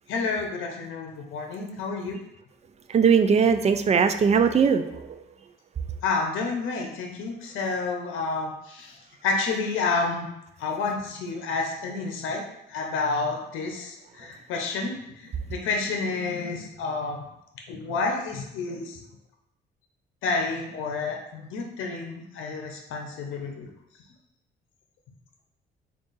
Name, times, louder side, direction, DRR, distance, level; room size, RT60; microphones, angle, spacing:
voice 1, 0.1-2.2 6.0-10.3 10.6-12.4 12.7-17.2 17.7-19.0 20.2-23.6, left 4 dB, 85° left, 2 dB, 0.7 m, -30 dB
voice 2, 2.9-4.9, right 6 dB, 35° right, 8 dB, 0.3 m, -19 dB
3.6 x 2.4 x 4.0 m, 0.84 s
cardioid pair, 90°, 20 cm